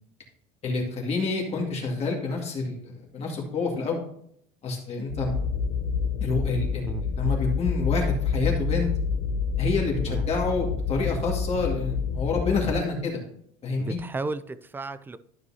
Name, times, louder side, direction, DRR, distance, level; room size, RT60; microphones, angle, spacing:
voice 1, 0.6-2.8 3.1-4.0 4.6-5.3 6.2-8.9 9.6-13.2 13.6-14.0, left 3 dB, 35° left, -1 dB, 2.1 m, -28 dB
sound 1, 5.1-12.7, left 5 dB, 85° left, 1.3 m, -28 dB
voice 2, 13.8-15.2, right 3 dB, 10° right, 15 dB, 0.4 m, -34 dB
12.5 x 5.3 x 2.8 m, 0.69 s
supercardioid pair, 120°, 19 cm